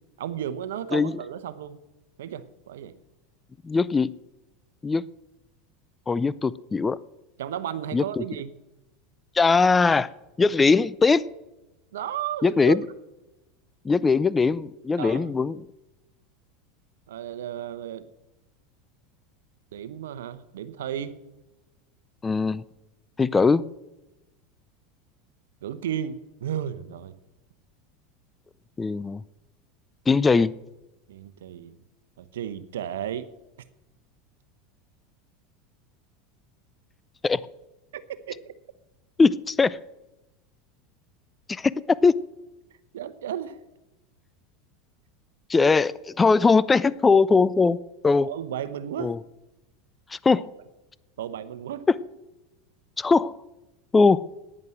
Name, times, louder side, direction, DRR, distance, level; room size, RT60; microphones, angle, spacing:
voice 1, 0.2-1.8 2.2-3.0 7.4-8.5 11.9-12.8 15.0-15.3 17.1-18.1 19.7-21.2 25.6-27.2 31.1-31.8 32.2-33.3 37.9-38.6 42.9-43.6 48.2-49.2 51.2-51.9, right 10 dB, 85° right, 13 dB, 0.9 m, -33 dB
voice 2, 3.6-4.1 4.8-5.0 6.1-7.0 7.9-8.2 9.3-10.1 10.4-11.2 12.4-12.8 13.8-15.6 22.2-22.6 23.2-23.6 28.8-29.2 30.1-30.5 37.2-37.4 39.2-39.8 41.5-42.1 45.5-47.8 48.0-48.3 49.0-49.2 50.1-50.4 53.0-53.4 53.9-54.2, left 4 dB, 20° left, 19 dB, 0.4 m, -20 dB
10.5 x 9.9 x 7.8 m, 0.99 s
hypercardioid pair, 100°, 0 cm